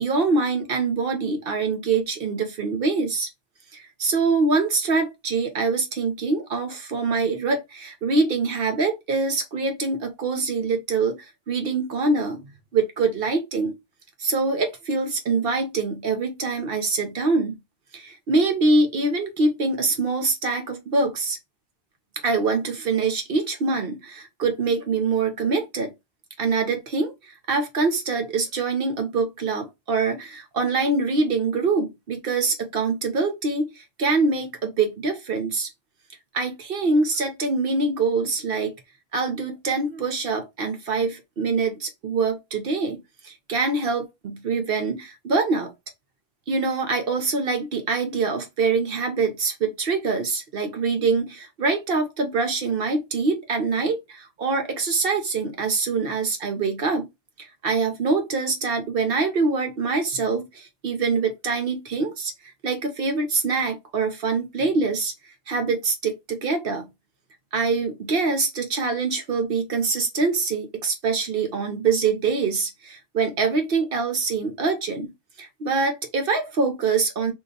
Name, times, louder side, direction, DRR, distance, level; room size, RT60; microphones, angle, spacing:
voice 1, 0.0-3.3 3.7-13.7 14.2-17.6 17.9-21.4 22.2-25.9 26.4-35.7 36.3-38.7 39.1-45.7 46.5-57.1 57.4-65.1 65.5-66.9 67.5-75.1 75.4-77.3, right 4 dB, 60° right, 0.8 m, -24 dB
2.7 x 2.3 x 3.7 m
omnidirectional pair, 1.2 m